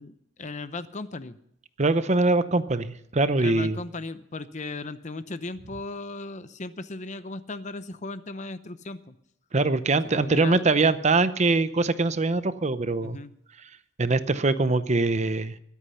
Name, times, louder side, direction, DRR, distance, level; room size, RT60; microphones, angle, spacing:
voice 1, 0.0-1.4 3.4-9.1 9.9-10.6 13.0-13.3, left 3 dB, 35° left, 13 dB, 0.7 m, -37 dB
voice 2, 1.8-3.8 9.5-13.2 14.0-15.6, right 3 dB, 35° right, 13 dB, 0.7 m, -23 dB
22.5 x 8.4 x 5.6 m, 0.71 s
head